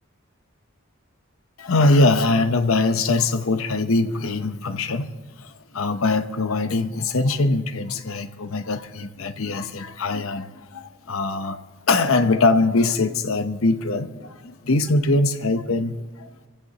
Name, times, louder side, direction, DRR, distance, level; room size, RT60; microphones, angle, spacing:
voice 1, 1.6-5.1 5.4-11.6 11.9-16.5, left 2 dB, 75° left, 10 dB, 0.8 m, -22 dB
26.5 x 15.5 x 2.9 m, 1.4 s
head